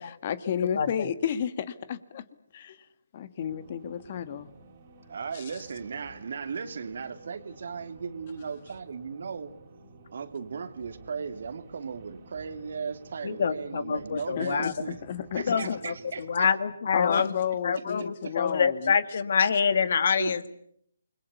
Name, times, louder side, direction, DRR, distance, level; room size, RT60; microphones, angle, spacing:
voice 1, 0.0-2.2 2.5-2.9 3.1-4.5 5.3-5.4 14.4-14.7 15.1-15.7 16.9-18.9, left 8 dB, 40° left, 14 dB, 1.5 m, -32 dB
sound 1, 3.4-16.5, right 3 dB, 40° right, 3.9 m, -53 dB
voice 2, 5.1-9.5 10.1-15.0 15.3-16.5 17.7-18.3 20.2-20.4, right 5 dB, 55° right, 9 dB, 2.7 m, -37 dB
voice 3, 13.2-14.7 15.4-17.4 17.6-20.5, left 6 dB, 55° left, 13 dB, 1.9 m, -26 dB
29.0 x 22.0 x 8.3 m, 0.69 s
figure-of-eight pair, 150°, 0 cm